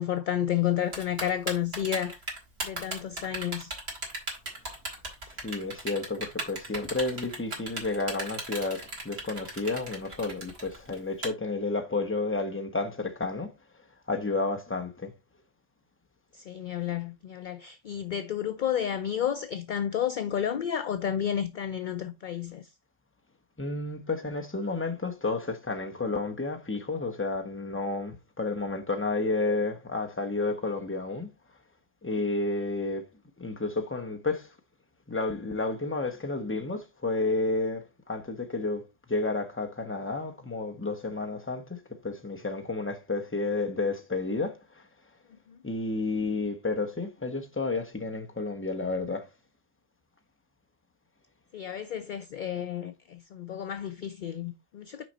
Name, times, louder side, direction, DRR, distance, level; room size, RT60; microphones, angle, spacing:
voice 1, 0.0-2.2 2.6-3.7 16.3-22.7 45.5-45.6 51.5-55.0, left 9 dB, 60° left, 0.5 m, -31 dB
Typing, 0.9-11.3, right 2 dB, 55° right, 2.6 m, -36 dB
voice 2, 5.4-13.5 14.1-15.1 23.6-31.3 32.0-33.0 33.4-34.5 35.1-38.8 39.1-41.8 42.0-44.8 45.6-49.3, left 3 dB, 10° left, 0.9 m, -31 dB
6.2 x 4.9 x 4.1 m
omnidirectional pair, 1.3 m